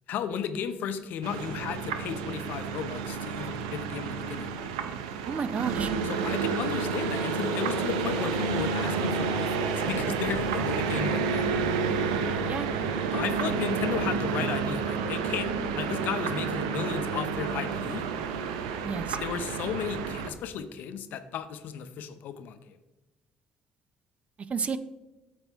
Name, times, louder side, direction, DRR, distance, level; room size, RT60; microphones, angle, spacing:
voice 1, 0.1-4.6 6.0-11.6 13.1-18.1 19.1-22.8, left 8 dB, 70° left, 10 dB, 0.6 m, -34 dB
sound 1, 1.2-20.3, right 5 dB, 85° right, 0.6 m, -30 dB
voice 2, 5.3-5.9 12.5-12.7 18.8-19.2 24.5-24.8, right 5 dB, 40° right, 14 dB, 0.6 m, -31 dB
8.9 x 7.0 x 3.4 m, 1.1 s
hypercardioid pair, 55°, 3 cm